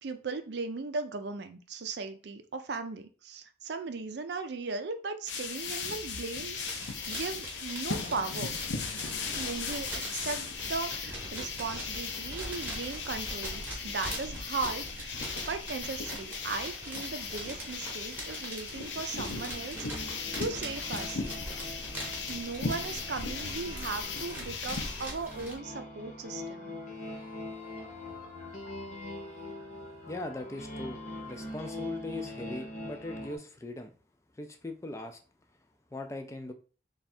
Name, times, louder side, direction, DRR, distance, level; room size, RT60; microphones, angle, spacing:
voice 1, 0.0-8.5 9.3-21.2 22.3-26.8, right 4 dB, 70° right, 9 dB, 0.5 m, -37 dB
sound 1, 5.3-25.1, left 5 dB, 80° left, 0.6 m, -37 dB
sound 2, 6.5-25.6, right 1 dB, 10° right, 0.9 m, -42 dB
sound 3, 19.7-33.4, left 2 dB, 40° left, 0.7 m, -43 dB
voice 2, 30.1-33.9 34.3-35.2 35.9-36.5, left 2 dB, 15° left, 5 dB, 0.3 m, -40 dB
3.4 x 2.3 x 4.1 m, 0.38 s
head